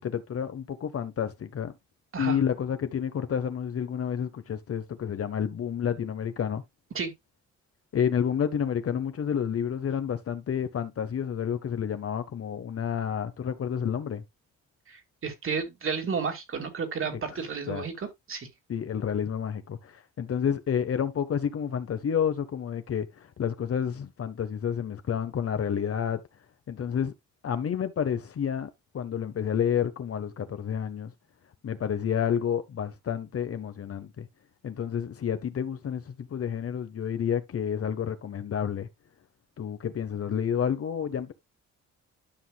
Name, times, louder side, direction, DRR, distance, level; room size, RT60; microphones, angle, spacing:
voice 1, 0.0-1.7 2.2-6.6 7.9-14.2 17.0-17.2 17.7-17.9 18.7-26.2 26.7-27.1 27.4-31.1 31.6-34.3 34.6-38.9 39.6-41.3, left 8 dB, 50° left, 1.2 m, -30 dB
voice 2, 14.9-18.5, right 5 dB, 45° right, 2.3 m, -32 dB
12.5 x 5.7 x 2.3 m
cardioid pair, 90°, 30 cm